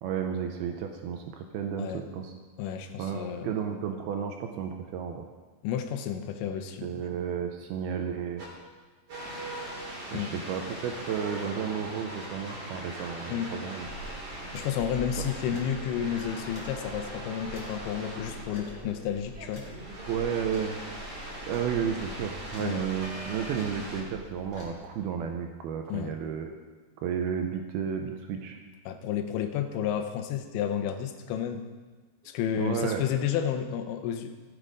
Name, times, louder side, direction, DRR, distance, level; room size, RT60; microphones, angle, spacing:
voice 1, 0.0-2.3 3.0-5.2 6.8-8.4 10.1-13.9 20.1-20.8 21.5-26.6 27.0-28.6 32.6-33.0, right 7 dB, 80° right, 4 dB, 2.3 m, -32 dB
voice 2, 2.6-3.5 5.6-6.9 10.1-10.3 13.3-13.5 14.5-19.7 22.6-22.8 25.9-26.1 28.9-31.7 32.3-34.3, left 9 dB, 85° left, 7 dB, 3.0 m, -31 dB
sound 1, 8.4-8.5 9.1-24.0, right 1 dB, 35° right, 3.3 m, -41 dB
sound 2, 13.8-24.7, equal, 25° left, 2.6 m, -46 dB
14.5 x 8.2 x 5.1 m, 1.3 s
omnidirectional pair, 5.2 m